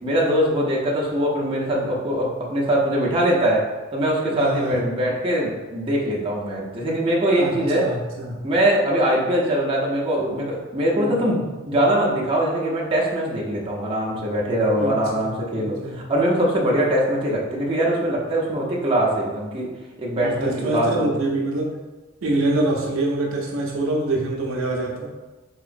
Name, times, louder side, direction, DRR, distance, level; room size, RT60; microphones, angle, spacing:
voice 1, 0.0-7.9 8.4-19.7 20.0-21.1, right 1 dB, 25° right, -4 dB, 0.6 m, -22 dB
voice 2, 4.3-4.8 7.4-8.4 11.0-11.1 14.7-16.0 20.2-21.8 22.2-25.1, right 2 dB, 75° right, 0 dB, 0.6 m, -25 dB
3.7 x 3.0 x 2.5 m, 1.2 s
head